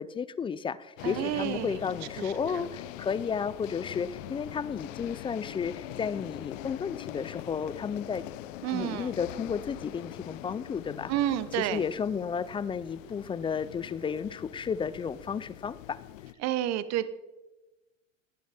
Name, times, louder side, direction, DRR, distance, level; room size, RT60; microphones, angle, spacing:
voice 1, 0.0-8.3 8.7-11.1 11.6-16.0, left 6 dB, 15° left, 17 dB, 0.4 m, -33 dB
sound 1, 1.0-16.3, left 15 dB, 75° left, 0.7 m, -43 dB
voice 2, 1.0-1.8 2.2-2.7 8.6-9.1 11.1-11.8 16.4-17.1, right 12 dB, 45° right, 14 dB, 1.0 m, -30 dB
18.5 x 9.2 x 4.2 m, 1.1 s
hypercardioid pair, 110°, 39 cm